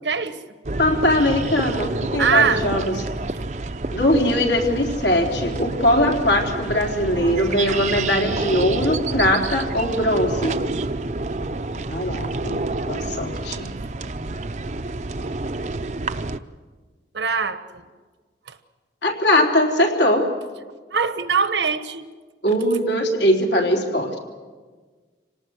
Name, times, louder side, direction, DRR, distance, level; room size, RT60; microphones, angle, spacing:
voice 1, 0.0-0.4 2.2-2.7 17.1-17.9 18.5-18.6 20.9-22.1, right 6 dB, 80° right, 11 dB, 1.3 m, -22 dB
sound 1, 0.6-16.4, right 2 dB, 40° right, 0.6 m, -28 dB
voice 2, 0.8-2.9 3.9-10.6 11.9-13.7 19.0-20.3 22.4-24.2, left 1 dB, 80° left, 1 dB, 3.7 m, -21 dB
27.0 x 18.5 x 7.9 m, 1.4 s
head